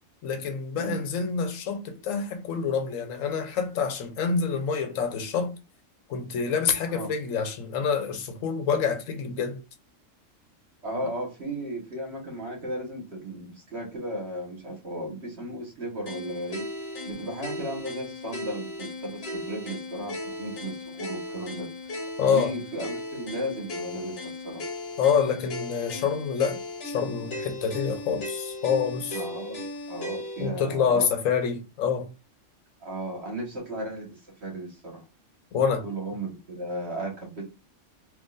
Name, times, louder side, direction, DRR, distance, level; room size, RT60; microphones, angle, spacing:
voice 1, 0.2-5.6 6.1-9.6 22.2-22.6 25.0-29.2 30.4-32.1 35.5-35.9, left 6 dB, 85° left, 1.1 m, -27 dB
voice 2, 10.8-21.7 22.3-24.7 29.1-31.1 32.8-35.0 35.8-37.4, right 1 dB, 55° right, 1.7 m, -35 dB
sound 1, 16.1-30.5, left 2 dB, 55° left, 1.1 m, -37 dB
3.7 x 3.0 x 2.5 m
omnidirectional pair, 1.3 m